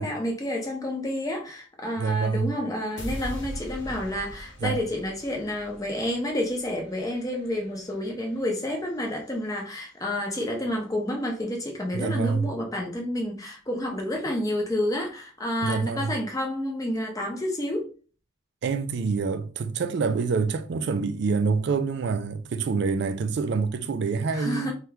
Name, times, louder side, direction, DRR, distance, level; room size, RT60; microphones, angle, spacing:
voice 1, 0.0-17.9 24.3-24.7, left 1 dB, 15° left, 0.6 m, -29 dB
voice 2, 2.0-2.5 4.6-4.8 11.9-12.5 15.6-16.1 18.6-24.7, right 4 dB, 55° right, 0.3 m, -26 dB
sound 1, 3.0-9.1, equal, 60° left, 0.7 m, -41 dB
2.8 x 2.2 x 3.4 m
head